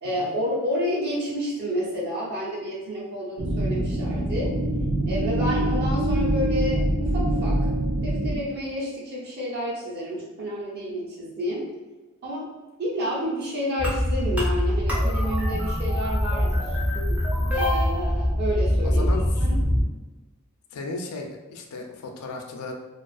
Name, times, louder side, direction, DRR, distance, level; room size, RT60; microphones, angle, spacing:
voice 1, 0.0-4.5 5.1-7.7 8.0-11.7 12.2-12.5 12.8-16.7 17.5-19.0 19.4-19.6, equal, 45° right, -5 dB, 0.7 m, -30 dB
sound 1, 3.4-8.4, right 1 dB, 85° right, 0.7 m, -24 dB
sound 2, 13.8-19.8, equal, 5° right, 0.4 m, -23 dB
voice 2, 18.8-19.3 20.7-22.7, left 3 dB, 90° left, 3 dB, 0.4 m, -35 dB
2.4 x 2.4 x 2.3 m, 1.2 s
head